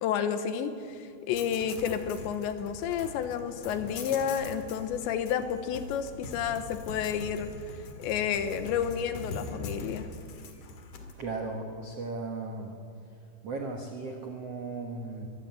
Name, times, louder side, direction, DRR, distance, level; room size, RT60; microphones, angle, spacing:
voice 1, 0.0-7.5 8.0-10.1, left 8 dB, 80° left, 10 dB, 3.3 m, -31 dB
sound 1, 1.3-11.1, left 3 dB, 55° left, 3.0 m, -42 dB
voice 2, 11.2-12.7 13.4-15.3, right 3 dB, 75° right, 2 dB, 1.4 m, -36 dB
23.0 x 15.0 x 9.6 m, 2.5 s
omnidirectional pair, 5.3 m